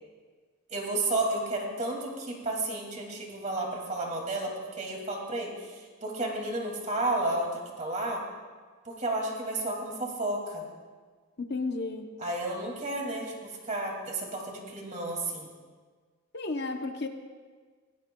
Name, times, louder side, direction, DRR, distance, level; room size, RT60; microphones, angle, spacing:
voice 1, 0.7-8.2 8.8-10.6 12.2-13.4 13.7-15.5, right 2 dB, 35° right, 1 dB, 2.4 m, -32 dB
voice 2, 11.5-12.1 16.3-17.1, left 3 dB, 50° left, 5 dB, 0.8 m, -32 dB
20.5 x 18.0 x 2.3 m, 1.5 s
head